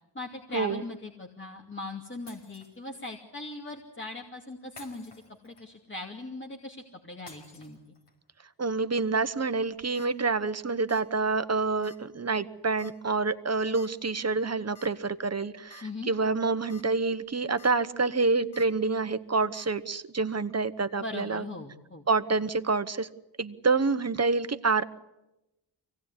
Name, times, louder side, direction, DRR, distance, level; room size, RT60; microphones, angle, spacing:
voice 1, 0.1-5.1 5.4-7.8 15.8-16.1 21.0-22.1, left 2 dB, 25° left, 0 dB, 2.5 m, -40 dB
Shatter, 2.3-3.2 4.8-5.9 7.3-8.3, left 2 dB, 65° left, 5.9 m, -52 dB
voice 2, 8.6-21.4 22.1-23.1 23.4-24.8, right 4 dB, 35° right, 11 dB, 1.1 m, -27 dB
sound 1, 9.6-10.1 10.9-11.1 11.4-11.5 11.8-12.0 12.8-13.1 13.8-13.9 14.8-14.9 15.3-15.4 15.7-15.8 16.5-16.8 17.2-17.7 18.5-18.7 19.5-19.7, left 4 dB, 80° left, 2.6 m, -52 dB
24.5 x 18.0 x 9.7 m, 0.95 s
wide cardioid pair, 90°, 45 cm